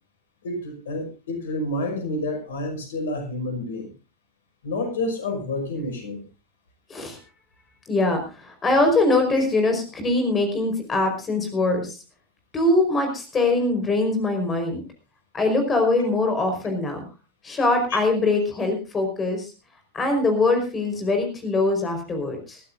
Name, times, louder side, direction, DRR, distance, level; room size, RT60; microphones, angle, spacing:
voice 1, 0.4-3.9 4.6-6.2 17.9-18.0, left 2 dB, 60° left, 5 dB, 5.8 m, -29 dB
voice 2, 7.9-12.0 12.5-14.8 15.3-17.0 17.4-19.5 19.9-22.6, left 2 dB, 20° left, 5 dB, 5.0 m, -22 dB
21.5 x 15.5 x 2.6 m, 0.32 s
figure-of-eight pair, 90°, 0 cm